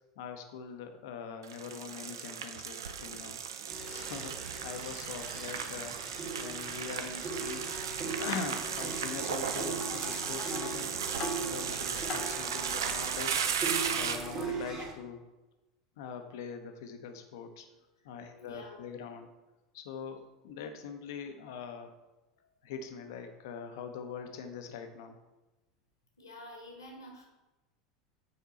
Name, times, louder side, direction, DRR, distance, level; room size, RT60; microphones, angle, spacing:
voice 1, 0.2-3.4 3.9-10.9 11.4-15.3 16.0-17.7 18.0-19.3 19.7-21.9 22.6-25.2, left 6 dB, 60° left, 6 dB, 0.8 m, -43 dB
sound 1, 1.4-14.4, right 7 dB, 70° right, 0.5 m, -36 dB
sound 2, 3.7-14.9, right 3 dB, 30° right, 1.5 m, -40 dB
sound 3, 9.2-14.3, left 8 dB, 40° left, 0.4 m, -46 dB
voice 2, 18.0-18.8 22.4-22.6 26.2-27.2, left 1 dB, 80° left, 1 dB, 1.5 m, -50 dB
7.0 x 4.6 x 4.0 m, 1.1 s
figure-of-eight pair, 80°, 2 cm